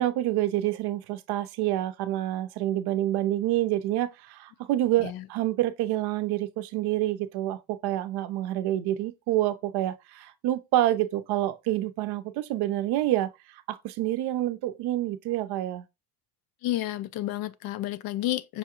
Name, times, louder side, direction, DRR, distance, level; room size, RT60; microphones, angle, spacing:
voice 1, 0.0-13.3 13.7-15.8, right 14 dB, 70° right, 0.6 m, -27 dB
voice 2, 16.6-18.6, left 14 dB, 60° left, 0.5 m, -31 dB
5.5 x 2.4 x 2.9 m
cardioid pair, 130°, 41 cm